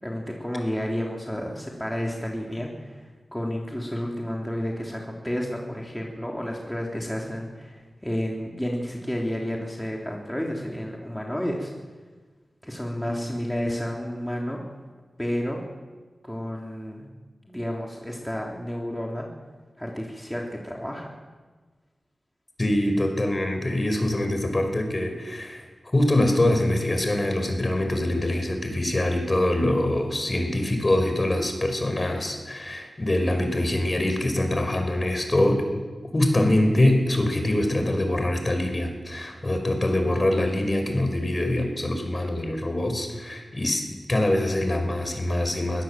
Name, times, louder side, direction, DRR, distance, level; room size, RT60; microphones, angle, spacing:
voice 1, 0.0-11.7 12.6-14.6 15.2-15.6 16.2-17.1 17.5-19.3 19.8-21.1, equal, 5° left, -1 dB, 3.5 m, -31 dB
voice 2, 22.6-25.7 25.9-35.7 36.1-43.8 44.1-45.8, left 1 dB, 35° left, 5 dB, 5.3 m, -24 dB
22.0 x 17.0 x 7.7 m, 1.4 s
cardioid pair, 50°, 0 cm